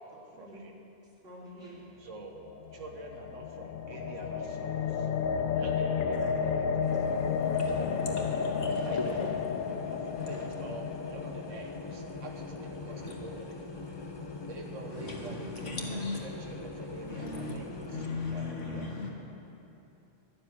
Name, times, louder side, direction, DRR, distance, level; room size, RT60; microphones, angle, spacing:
voice 1, 0.4-0.7 2.0-2.4 2.7-5.1 5.5-7.0 8.8-9.5 9.9-13.5 14.4-15.8 16.2-18.0 18.3-18.9, right 2 dB, 85° right, 2 dB, 1.5 m, -46 dB
voice 2, 1.2-1.8 8.7-9.4, right 1 dB, 50° right, -8 dB, 3.8 m, -47 dB
sound 1, 2.5-12.6, left 6 dB, 60° left, 0.5 m, -32 dB
sound 2, 6.8-18.1, left 3 dB, 25° left, 0.8 m, -41 dB
voice 3, 7.4-9.3 10.2-10.5 12.9-13.2 14.9-16.2 17.1-17.6 17.9-19.1, left 3 dB, 75° left, 0 dB, 2.0 m, -39 dB
12.5 x 7.1 x 9.6 m, 3.0 s
omnidirectional pair, 1.2 m